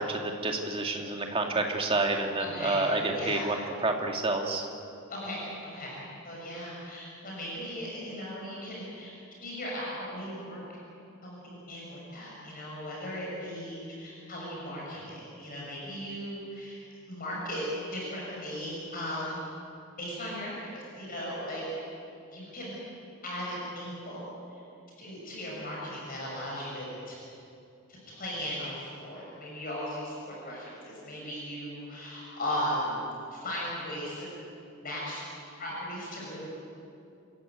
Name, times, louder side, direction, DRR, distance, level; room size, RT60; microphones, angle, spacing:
voice 1, 0.0-4.7, right 2 dB, 25° right, 2 dB, 2.2 m, -29 dB
voice 2, 2.4-3.5 5.1-9.1 9.4-10.6 11.2-16.8 17.1-17.6 17.9-19.4 20.0-21.6 22.3-22.8 23.2-24.3 25.0-27.2 27.9-33.0 33.3-34.3 34.8-36.5, equal, 40° left, -4 dB, 6.7 m, -37 dB
28.0 x 14.5 x 9.4 m, 2.6 s
head